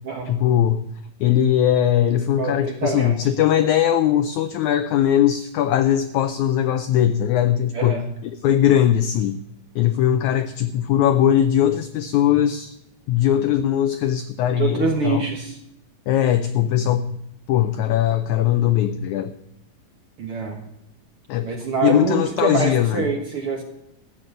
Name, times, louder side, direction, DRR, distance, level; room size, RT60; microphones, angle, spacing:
voice 1, 0.3-0.8 1.2-9.4 9.7-12.7 13.1-15.2 16.1-17.2 17.5-19.3 21.3-21.5 21.8-23.1, left 10 dB, 90° left, 10 dB, 1.6 m, -20 dB
voice 2, 2.3-3.2 7.7-8.1 14.6-15.6 20.2-20.6 21.4-23.6, right 5 dB, 55° right, 2 dB, 1.6 m, -25 dB
13.5 x 8.7 x 6.6 m, 0.83 s
omnidirectional pair, 4.1 m